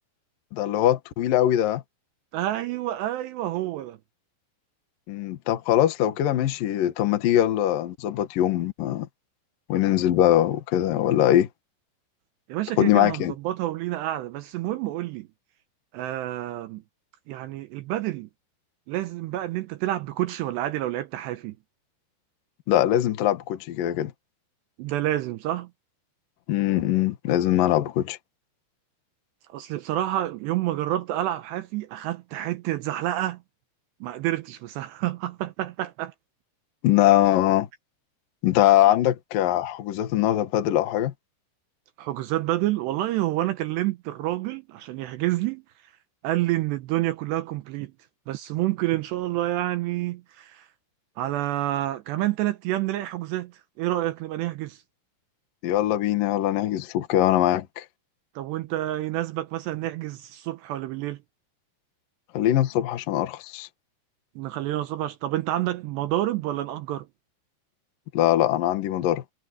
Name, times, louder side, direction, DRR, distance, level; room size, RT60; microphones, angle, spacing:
voice 1, 0.5-1.8 5.1-9.1 9.7-11.5 12.8-13.3 22.7-24.1 26.5-28.2 36.8-37.7 38.4-41.1 55.6-57.9 62.3-63.7 68.1-69.2, left 12 dB, 60° left, 2.4 m, -22 dB
voice 2, 2.3-4.0 12.5-15.3 15.9-16.8 17.3-18.3 18.9-21.5 24.8-25.7 29.5-33.4 34.0-36.1 42.0-45.6 46.2-47.9 48.3-50.7 51.2-53.5 53.8-54.8 58.4-61.2 64.4-67.1, right 15 dB, 80° right, 2.5 m, -28 dB
omnidirectional pair, 5.8 m